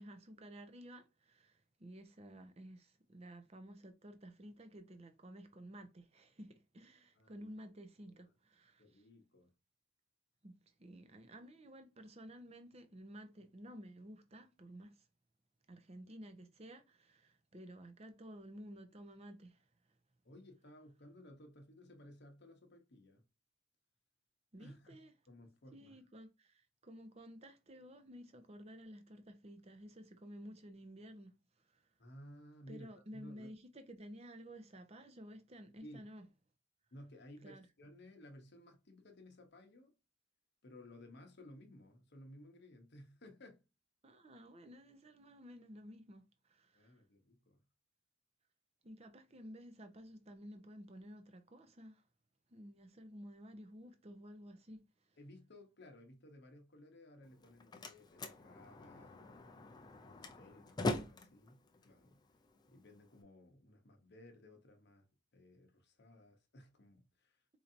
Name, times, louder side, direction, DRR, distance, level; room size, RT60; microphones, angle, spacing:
voice 1, 0.0-9.0 10.4-15.1 15.7-19.7 24.5-25.1 25.7-31.3 31.7-31.9 32.7-36.3 37.4-37.7 44.0-46.9 48.8-52.0 52.5-54.8, equal, 30° right, 0.6 m, -53 dB
voice 2, 7.2-7.5 8.8-9.5 20.2-23.2 24.6-25.0 25.3-26.0 32.0-33.6 35.8-36.1 36.9-39.9 40.6-43.6 46.7-47.6 55.2-62.2 62.6-65.0 65.3-67.6, left 1 dB, 50° left, 0.8 m, -58 dB
Slam, 57.2-63.2, left 2 dB, 20° left, 0.4 m, -43 dB
4.4 x 2.7 x 2.5 m
head